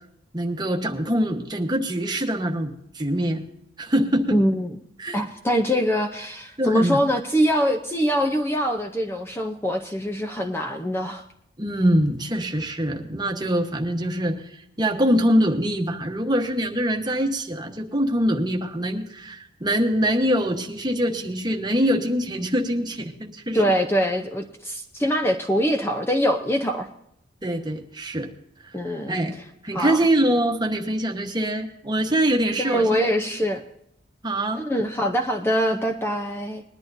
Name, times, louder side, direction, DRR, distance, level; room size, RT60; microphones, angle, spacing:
voice 1, 0.3-3.4 3.8-4.4 5.0-5.1 6.6-7.0 11.6-23.6 27.4-28.3 28.6-28.7 29.1-29.4 29.6-33.1 34.2-34.6, equal, 20° right, 3 dB, 1.2 m, -24 dB
voice 2, 4.3-4.8 5.1-11.2 23.5-26.9 28.7-29.1 29.7-30.1 32.6-33.6 34.6-36.6, equal, 10° left, 4 dB, 0.7 m, -23 dB
20.5 x 11.5 x 2.7 m, 0.77 s
head